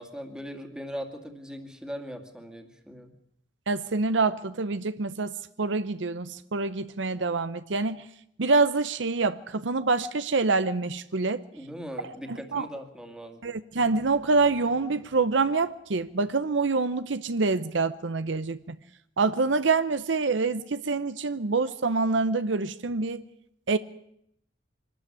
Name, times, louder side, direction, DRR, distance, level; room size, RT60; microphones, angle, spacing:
voice 1, 0.0-3.1 11.5-13.4, equal, 5° right, 2.3 m, -39 dB
voice 2, 3.7-8.0 8.4-11.4 12.3-12.7 13.4-18.8 19.2-23.2 23.7-23.8, right 3 dB, 75° right, 0.8 m, -26 dB
24.5 x 13.0 x 9.8 m
head